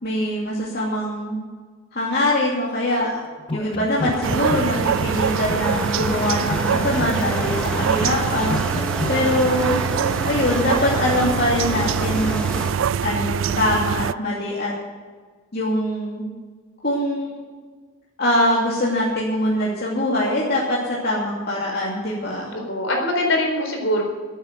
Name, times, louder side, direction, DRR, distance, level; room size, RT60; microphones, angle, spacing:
voice 1, 0.0-1.4 1.9-3.2 3.5-9.8 10.2-14.7 15.5-16.3 16.8-17.3 18.2-22.5, left 1 dB, 50° left, -5 dB, 2.7 m, -23 dB
sound 1, 3.4-5.2 5.5-9.2, left 2 dB, 25° left, 0.6 m, -31 dB
sound 2, 4.0-12.7, left 1 dB, 5° left, 1.4 m, -30 dB
sound 3, 4.2-14.1, right 8 dB, 65° right, 0.3 m, -24 dB
voice 2, 9.1-9.6 22.5-24.0, left 1 dB, 65° left, 1 dB, 4.1 m, -23 dB
13.5 x 9.2 x 8.1 m, 1.5 s
head